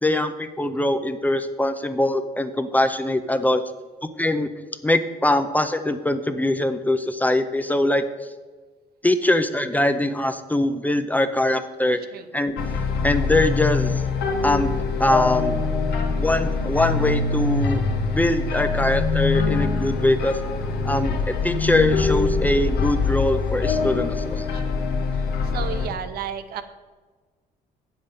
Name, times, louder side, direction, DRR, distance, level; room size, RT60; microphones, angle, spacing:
voice 1, 0.0-3.6 4.2-4.5 4.8-8.0 9.0-12.0 12.3-12.6 13.0-14.0 14.4-15.6 16.2-17.8 18.1-20.4 20.8-24.5, left 1 dB, 10° left, 9 dB, 0.5 m, -22 dB
voice 2, 11.9-12.3 24.5-24.8 25.1-26.6, right 8 dB, 65° right, 10 dB, 0.8 m, -34 dB
sound 1, 12.6-25.9, left 4 dB, 70° left, 1.2 m, -24 dB
8.5 x 7.5 x 5.2 m, 1.4 s
cardioid pair, 110°, 17 cm